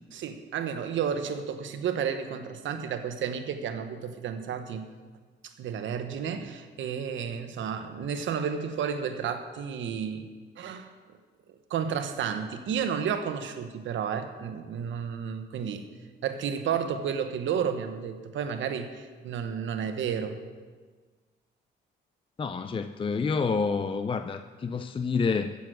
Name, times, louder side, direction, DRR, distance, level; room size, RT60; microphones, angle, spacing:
voice 1, 0.1-4.9 5.4-10.3 10.6-10.9 11.7-15.8 16.2-20.4, right 7 dB, 75° right, 8 dB, 1.2 m, -32 dB
voice 2, 22.4-25.5, left 5 dB, 25° left, 9 dB, 0.5 m, -28 dB
15.5 x 7.1 x 6.3 m, 1.5 s
cardioid pair, 90°, 20 cm